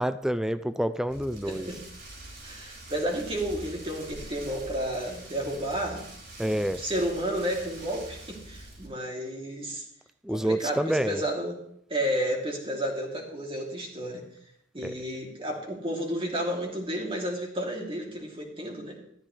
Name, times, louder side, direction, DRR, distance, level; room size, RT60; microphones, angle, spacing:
voice 1, 0.0-1.7 6.4-6.8 10.2-11.2 14.8-15.0, right 1 dB, 5° right, 12 dB, 0.4 m, -28 dB
Rain, 1.1-8.9, right 1 dB, 65° right, 5.6 m, -45 dB
voice 2, 1.4-1.8 2.4-6.1 6.5-9.8 10.3-11.6 11.9-14.2 14.7-19.0, equal, 30° right, 0 dB, 2.9 m, -32 dB
14.0 x 13.5 x 3.3 m, 0.70 s
head